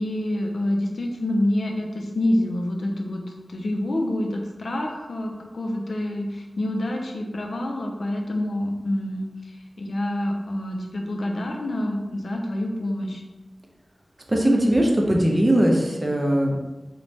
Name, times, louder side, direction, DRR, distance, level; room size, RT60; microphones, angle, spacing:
voice 1, 0.0-3.2 3.5-13.2, left 1 dB, 80° left, 1 dB, 0.4 m, -27 dB
voice 2, 14.3-16.6, right 1 dB, 25° right, 0 dB, 0.5 m, -20 dB
3.0 x 2.1 x 2.6 m, 1.1 s
wide cardioid pair, 85°, 0 cm